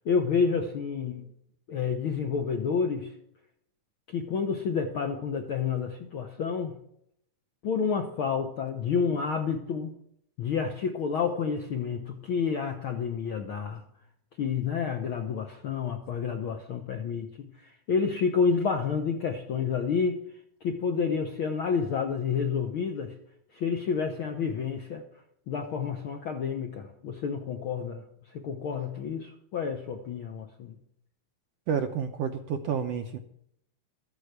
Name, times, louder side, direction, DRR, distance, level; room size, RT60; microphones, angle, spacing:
voice 1, 0.0-1.2 1.7-3.1 4.1-6.7 7.6-9.9 10.4-13.8 14.4-20.2 20.6-23.2 23.5-25.0 25.5-28.0 28.3-30.8, left 6 dB, 70° left, 4 dB, 1.2 m, -29 dB
voice 2, 31.7-33.2, right 7 dB, 75° right, 6 dB, 1.5 m, -30 dB
13.5 x 8.4 x 8.0 m, 0.73 s
omnidirectional pair, 3.7 m